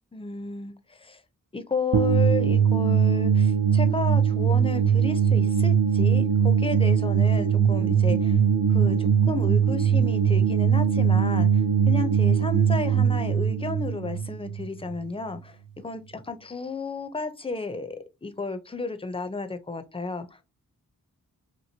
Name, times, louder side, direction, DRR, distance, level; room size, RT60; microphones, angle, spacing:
voice 1, 0.1-1.2 1.5-8.4 8.7-15.6 15.8-20.4, left 4 dB, 15° left, 0.5 m, -33 dB
sound 1, 1.9-15.0, right 7 dB, 70° right, 0.5 m, -21 dB
2.9 x 2.6 x 2.7 m
cardioid pair, 45°, 34 cm